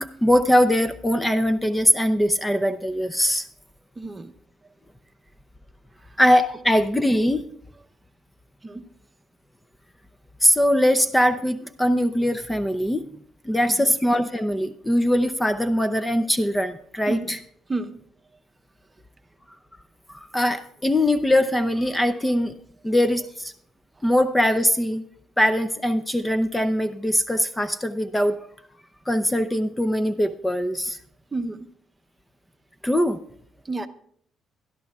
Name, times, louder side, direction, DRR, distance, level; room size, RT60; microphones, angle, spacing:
voice 1, 0.0-3.4 6.2-7.4 10.4-13.0 13.4-17.4 20.1-22.5 22.8-23.5 24.0-25.0 25.4-28.4 29.1-31.0 32.8-33.2, equal, 10° left, 10 dB, 0.6 m, -21 dB
voice 2, 4.0-4.3 8.6-8.9 13.7-13.9 17.1-17.4 17.7-18.0 31.3-31.7 33.6-33.9, right 2 dB, 25° right, 8 dB, 0.9 m, -31 dB
21.5 x 12.5 x 2.4 m, 0.64 s
cardioid pair, 90°, 0 cm